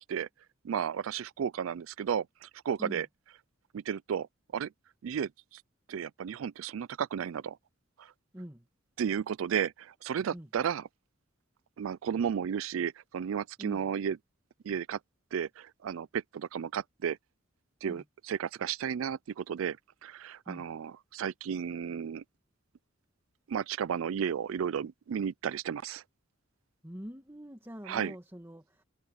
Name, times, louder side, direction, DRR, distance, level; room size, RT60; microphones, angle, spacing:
voice 1, 0.6-3.1 3.7-4.3 4.5-4.7 5.0-5.6 5.9-7.6 8.0-8.1 9.0-10.9 11.8-14.2 14.6-15.0 15.3-17.2 17.8-19.8 20.0-22.2 23.5-26.0 27.9-28.1, right 8 dB, 90° right, 0.4 m, -33 dB
voice 2, 8.3-8.7 10.3-10.5 13.6-13.9 17.8-18.0 20.5-20.7 26.8-28.8, equal, 15° right, 2.1 m, -44 dB
head